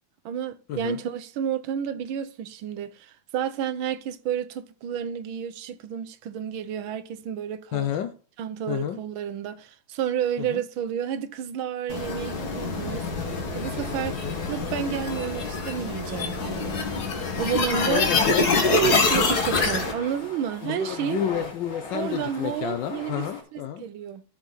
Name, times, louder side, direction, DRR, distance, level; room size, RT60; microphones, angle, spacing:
voice 1, 0.2-7.9 8.4-13.1 13.5-14.2 14.5-16.9 17.3-18.1 18.6-21.3 21.9-24.2, right 9 dB, 75° right, 1.5 m, -30 dB
voice 2, 7.7-8.1 8.7-9.0 10.4-10.6 14.2-14.4 17.9-18.5 18.8-19.0 20.6-23.8, left 11 dB, 70° left, 1.2 m, -30 dB
sound 1, 11.9-19.9, left 4 dB, 50° left, 2.0 m, -26 dB
sound 2, 17.7-23.4, left 3 dB, 85° left, 3.4 m, -40 dB
14.0 x 4.9 x 4.1 m
omnidirectional pair, 2.3 m